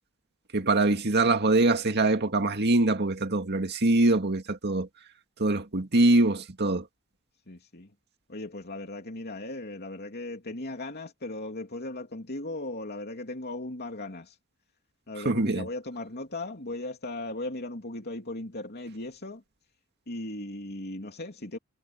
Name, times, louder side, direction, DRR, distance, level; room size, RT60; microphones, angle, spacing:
voice 1, 0.5-4.9 5.4-6.8 15.3-15.7, right 2 dB, 50° right, 2.0 m, -23 dB
voice 2, 7.5-7.9 8.3-14.3 15.1-19.4 20.1-21.6, left 2 dB, 50° left, 3.1 m, -37 dB
head